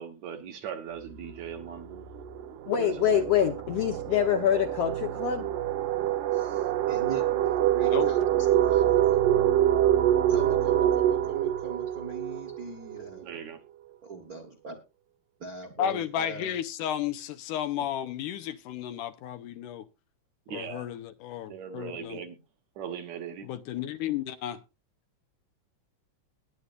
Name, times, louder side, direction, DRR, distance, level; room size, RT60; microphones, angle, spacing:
voice 1, 0.0-2.1 2.7-3.3 13.2-13.6 20.5-20.9 21.5-22.4 22.8-23.5, right 8 dB, 65° right, 2.2 m, -39 dB
sound 1, 1.1-1.3 1.6-13.2, right 11 dB, 80° right, 2.5 m, -26 dB
voice 2, 2.7-5.5, left 9 dB, 65° left, 1.6 m, -25 dB
voice 3, 6.3-9.3 10.3-13.4 14.0-14.8 15.4-16.6, right 4 dB, 40° right, 1.3 m, -42 dB
voice 4, 15.8-19.9 20.5-22.2 23.4-24.6, left 10 dB, 80° left, 2.3 m, -33 dB
20.0 x 8.3 x 2.5 m
omnidirectional pair, 3.8 m